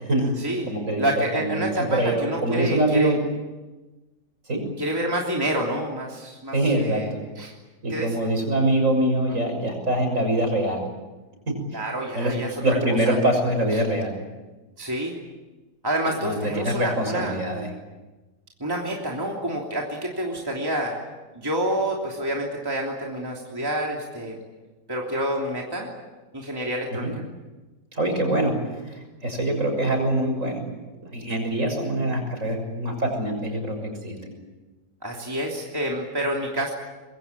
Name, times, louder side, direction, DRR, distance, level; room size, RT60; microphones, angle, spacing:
voice 1, 0.0-0.3 0.7-3.2 4.5-4.6 6.5-7.2 7.8-10.8 12.1-14.1 16.2-17.7 26.9-27.1 27.9-30.6 31.0-34.3, right 1 dB, 45° right, 3 dB, 6.8 m, -24 dB
voice 2, 1.0-3.1 4.8-7.1 7.4-7.5 7.9-8.1 9.3-9.4 11.7-12.8 13.0-13.2 13.7-13.8 14.8-15.2 15.8-17.4 18.6-21.0 21.3-24.4 24.9-25.9 26.3-27.1 35.0-36.7, right 1 dB, 15° right, -1 dB, 3.2 m, -28 dB
25.5 x 22.5 x 8.8 m, 1.2 s
omnidirectional pair, 1.8 m